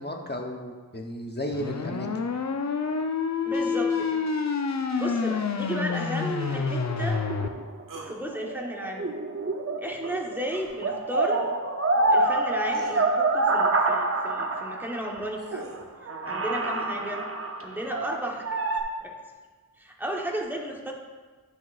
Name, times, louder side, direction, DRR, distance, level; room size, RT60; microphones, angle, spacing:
voice 1, 0.0-2.1, left 1 dB, 30° left, 2 dB, 0.9 m, -33 dB
sound 1, 1.5-7.5, left 5 dB, 50° left, 0.6 m, -28 dB
voice 2, 3.5-4.2 4.6-7.2 8.0-9.1 9.8-11.4 12.1-15.7 16.3-17.3 17.6-18.5 19.0-19.1 19.8-20.9, right 1 dB, 5° right, 0 dB, 1.0 m, -34 dB
sound 2, 6.8-10.4 10.7-15.2 15.7-15.8 16.1-18.8, right 2 dB, 40° right, 0.6 m, -27 dB
sound 3, 7.9-8.2 10.5-10.7 12.1-12.2 12.7-13.0 15.0-15.9, right 3 dB, 60° right, 1.0 m, -40 dB
9.8 x 6.1 x 2.5 m, 1.4 s
wide cardioid pair, 40°, 36 cm